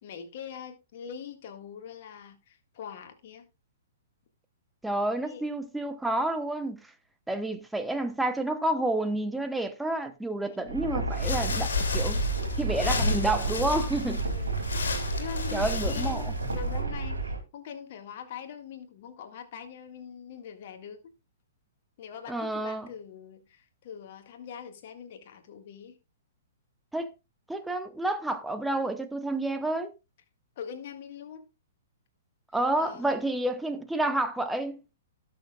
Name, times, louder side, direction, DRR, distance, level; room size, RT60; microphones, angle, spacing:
voice 1, 0.0-3.4 5.0-5.5 10.4-11.0 14.2-21.1 22.0-26.0 30.6-31.5 32.8-33.2, left 7 dB, 45° left, 1.8 m, -43 dB
voice 2, 4.8-6.8 7.3-12.2 12.6-14.2 15.5-16.3 22.3-22.9 26.9-27.1 27.5-29.9 32.5-34.8, right 2 dB, 5° right, 0.9 m, -29 dB
sound 1, 10.6-17.4, right 3 dB, 75° right, 2.7 m, -31 dB
sound 2, 11.1-16.8, left 3 dB, 60° left, 2.8 m, -32 dB
17.5 x 6.6 x 2.4 m
figure-of-eight pair, 115°, 0 cm